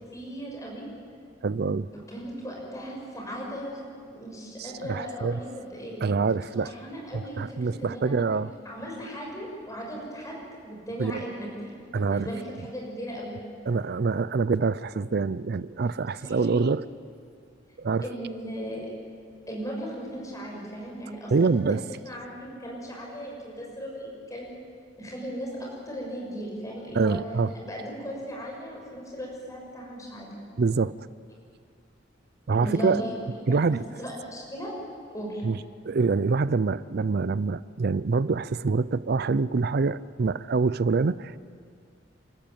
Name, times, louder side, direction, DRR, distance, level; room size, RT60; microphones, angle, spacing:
voice 1, 0.1-0.9 1.9-3.8 4.1-6.1 6.6-8.1 8.6-10.4 10.6-13.4 16.2-16.6 18.0-18.9 19.5-21.6 21.9-24.5 25.0-27.2 27.5-30.3 32.6-33.1 33.6-34.7 35.1-35.4, equal, 20° left, -2 dB, 6.3 m, -37 dB
voice 2, 1.4-1.9 4.6-5.4 6.0-6.7 7.1-8.5 11.0-11.2 11.9-12.3 13.7-16.8 17.8-18.0 21.3-21.9 26.9-27.5 30.6-30.9 32.5-33.0 33.5-33.8 35.4-35.6 35.8-41.4, right 4 dB, 55° right, 17 dB, 0.5 m, -25 dB
29.0 x 13.5 x 9.0 m, 2.2 s
head